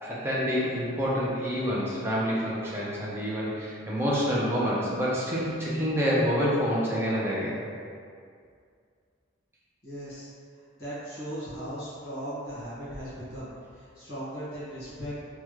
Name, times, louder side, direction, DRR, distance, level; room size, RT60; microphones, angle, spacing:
voice 1, 0.0-7.6, equal, 10° right, -7 dB, 0.5 m, -27 dB
voice 2, 9.8-10.3 10.8-15.2, equal, 50° left, -10 dB, 1.4 m, -38 dB
3.4 x 2.2 x 3.0 m, 2.3 s
head